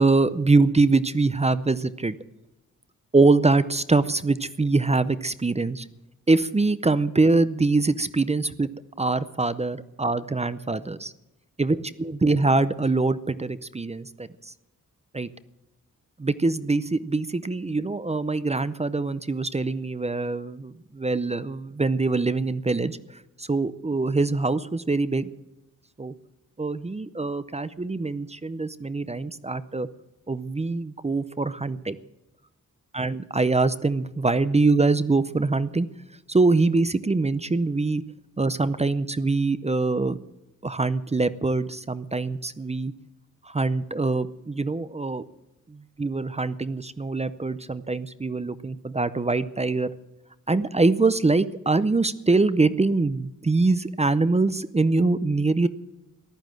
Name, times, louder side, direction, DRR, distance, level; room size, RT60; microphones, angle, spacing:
voice 1, 0.0-2.2 3.1-5.8 6.3-8.7 9.0-11.1 11.6-14.5 15.1-15.3 16.2-23.0 23.4-25.3 26.0-26.1 26.6-29.9 30.3-32.0 32.9-35.9 36.3-38.0 38.4-40.2 40.6-42.9 43.5-45.2 45.7-49.9 50.5-55.7, right 3 dB, 20° right, 14 dB, 0.6 m, -23 dB
14.5 x 11.5 x 7.6 m, 0.95 s
wide cardioid pair, 160°, 31 cm